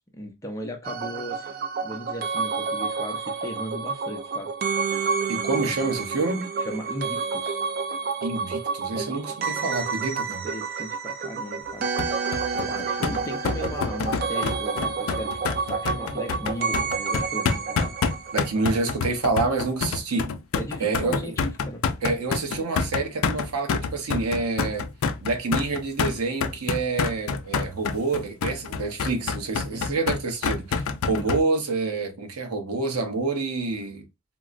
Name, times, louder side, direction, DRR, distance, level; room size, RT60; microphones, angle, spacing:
voice 1, 0.1-1.6 1.8-4.5 4.8-5.2 5.5-5.6 6.6-7.6 8.9-9.2 10.3-18.1 18.5-18.6 20.5-21.8 29.7-30.0 31.1-31.3, equal, 15° left, 0.5 m, -37 dB
sound 1, 0.8-18.9 19.2-19.3, right 5 dB, 40° right, 0.3 m, -29 dB
voice 2, 5.3-6.5 8.2-10.4 18.3-20.3 20.8-21.3 22.0-24.8 25.2-34.1, right 3 dB, 90° right, 0.7 m, -27 dB
sound 2, 12.0-31.4, left 5 dB, 70° left, 0.4 m, -27 dB
3.7 x 2.0 x 2.4 m
head